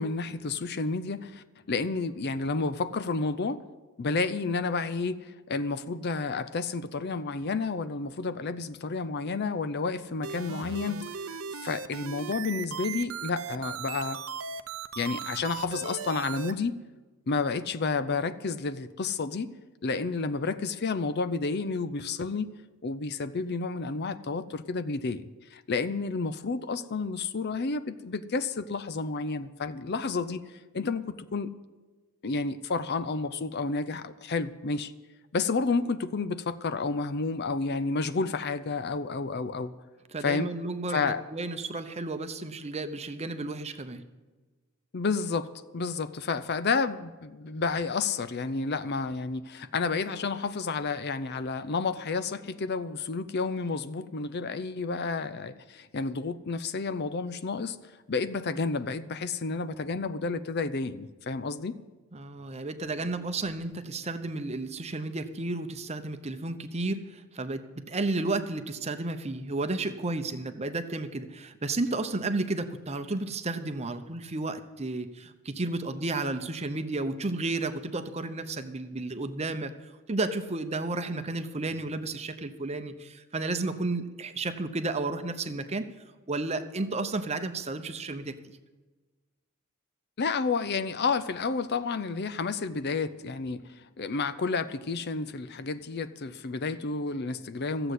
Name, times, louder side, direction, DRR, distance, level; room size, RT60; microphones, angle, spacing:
voice 1, 0.0-3.6 4.0-11.0 11.3-14.2 15.0-16.8 17.3-19.5 19.8-22.5 22.8-25.2 25.5-30.4 30.7-31.5 32.2-34.9 35.3-39.8 40.2-40.5 40.9-41.2 44.9-57.8 58.1-61.8 90.2-93.6 94.0-97.9, left 4 dB, 50° left, 13 dB, 0.5 m, -30 dB
sound 1, 10.2-16.5, right 6 dB, 65° right, 0.6 m, -37 dB
voice 2, 40.1-44.0 62.1-85.9 86.3-88.4, right 2 dB, 30° right, 9 dB, 0.8 m, -32 dB
14.5 x 7.9 x 8.2 m, 1.3 s
head